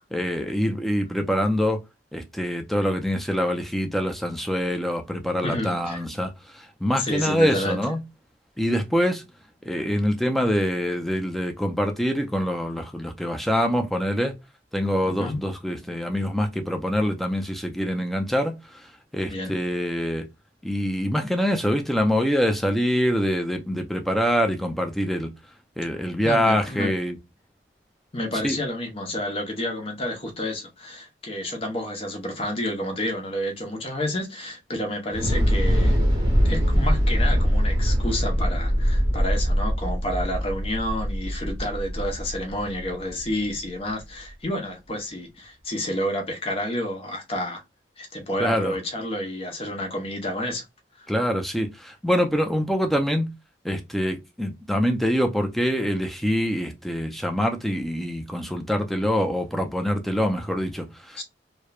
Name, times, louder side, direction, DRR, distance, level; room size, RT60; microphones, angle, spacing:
voice 1, 0.1-1.8 2.1-8.0 8.6-9.2 9.6-14.3 14.7-18.9 19.1-20.3 20.6-25.3 25.8-27.2 28.3-28.6 48.4-48.8 51.1-53.3 53.6-61.2, equal, ahead, 0.4 m, -25 dB
voice 2, 5.4-6.0 7.0-7.8 15.0-15.4 19.3-19.5 26.2-26.9 28.1-36.0 36.4-47.6 48.0-50.6 61.2-61.3, left 1 dB, 30° left, 0.7 m, -30 dB
Thunder / Explosion, 35.1-43.3, equal, 25° right, 0.9 m, -22 dB
2.9 x 2.1 x 2.2 m
head